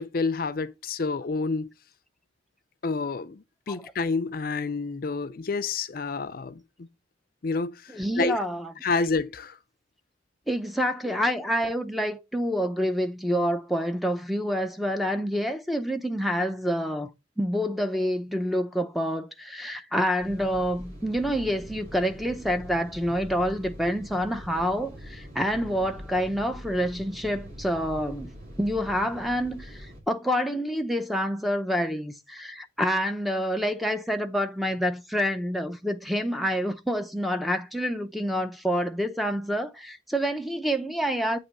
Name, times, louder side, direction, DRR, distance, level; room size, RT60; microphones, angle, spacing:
voice 1, 0.0-1.7 2.8-6.9 7.4-8.4 8.8-9.6, left 4 dB, 50° left, 0.5 m, -29 dB
voice 2, 7.9-8.7 10.5-17.1 17.4-28.3 28.6-41.4, equal, ahead, 0.6 m, -27 dB
sound 1, 20.2-30.0, equal, 50° right, 2.4 m, -43 dB
8.5 x 3.0 x 6.0 m
head